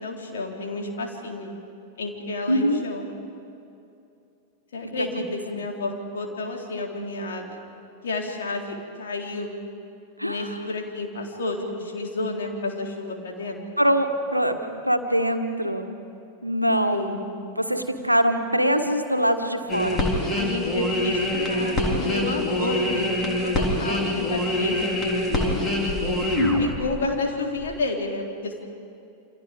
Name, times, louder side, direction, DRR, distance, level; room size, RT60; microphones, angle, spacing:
voice 1, 0.0-1.5 2.0-3.1 4.7-7.6 8.0-9.6 10.2-13.6 16.9-17.2 20.3-25.7 26.6-28.6, left 2 dB, 65° left, 1 dB, 3.7 m, -31 dB
voice 2, 2.5-2.8 5.0-5.1 10.2-10.5 13.8-14.6 14.8-15.9 16.4-17.2 17.6-20.0 26.3-26.7, equal, 90° right, 6 dB, 1.6 m, -23 dB
sound 1, 19.7-27.1 27.6-27.7, left 1 dB, 25° left, 4.2 m, -25 dB
28.5 x 27.0 x 5.2 m, 2.7 s
figure-of-eight pair, 90°, 0 cm